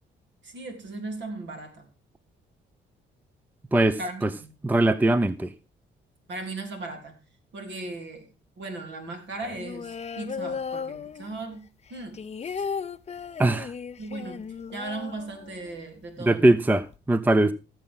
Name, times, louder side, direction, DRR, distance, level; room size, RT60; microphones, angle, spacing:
voice 1, 0.4-1.9 4.0-4.6 6.3-7.2 7.5-8.3 8.6-11.6 11.9-12.7 14.0-14.5 14.7-16.4, right 2 dB, 65° right, 3.4 m, -37 dB
voice 2, 3.7-4.3 4.6-5.5 13.4-13.7 16.3-17.5, right 2 dB, 10° right, 0.5 m, -21 dB
sound 1, 9.4-11.5 11.9-15.8 16.1-16.2 16.5-17.0, left 6 dB, 35° left, 0.7 m, -36 dB
16.5 x 7.5 x 3.7 m
cardioid pair, 90°, 20 cm